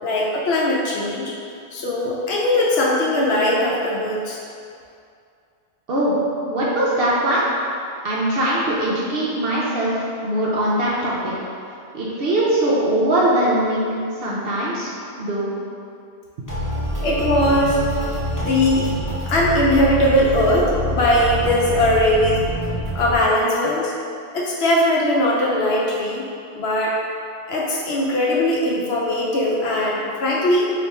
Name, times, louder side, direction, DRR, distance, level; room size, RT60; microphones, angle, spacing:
voice 1, 0.0-1.3 1.7-4.4 17.0-17.8 18.4-18.8 19.3-22.5 22.9-23.9 24.3-26.2 26.6-27.0 27.5-30.7, left 1 dB, 65° left, -4 dB, 0.8 m, -20 dB
voice 2, 6.5-7.4 8.0-11.3 11.9-13.9 14.2-14.9 15.2-15.5, right 1 dB, 60° right, -6 dB, 0.7 m, -21 dB
sound 1, 16.5-23.1, equal, 20° left, 0.7 m, -26 dB
3.3 x 2.5 x 4.1 m, 2.4 s
omnidirectional pair, 1.2 m